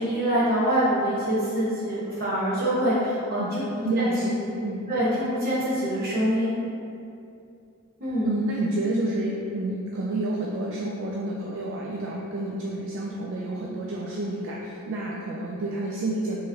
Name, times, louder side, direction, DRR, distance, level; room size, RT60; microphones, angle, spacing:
voice 1, 0.0-3.7 4.0-4.1 4.9-6.5 8.0-8.3, equal, 45° right, -8 dB, 1.2 m, -25 dB
voice 2, 3.8-4.8 8.2-16.4, right 1 dB, 60° right, -3 dB, 0.4 m, -29 dB
4.6 x 3.1 x 2.7 m, 2.6 s
head